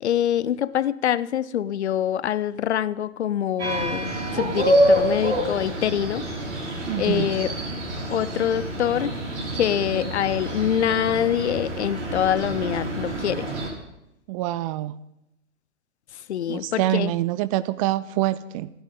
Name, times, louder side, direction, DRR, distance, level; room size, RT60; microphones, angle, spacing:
voice 1, 0.0-6.2 7.0-7.5 8.1-9.2 9.5-13.5 16.3-17.1, left 10 dB, 60° left, 18 dB, 0.8 m, -25 dB
sound 1, 3.6-13.7, right 1 dB, 65° right, 6.0 m, -26 dB
voice 2, 6.9-7.3 14.3-15.0 16.5-18.7, right 15 dB, 30° right, 17 dB, 0.5 m, -25 dB
30.0 x 11.0 x 3.9 m, 0.86 s
figure-of-eight pair, 100°, 37 cm